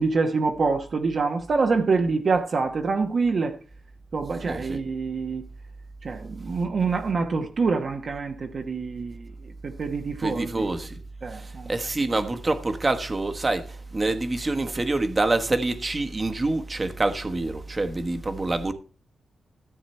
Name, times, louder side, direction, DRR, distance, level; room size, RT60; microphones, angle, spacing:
voice 1, 0.0-3.5 4.1-5.4 6.0-9.3 9.6-10.7 11.2-11.7, right 4 dB, 50° right, 1.2 m, -26 dB
voice 2, 4.5-4.8 10.2-11.0 11.4-13.6 13.9-18.7, right 2 dB, 25° right, 1.3 m, -26 dB
14.0 x 8.5 x 4.4 m
wide cardioid pair, 135°, 0 cm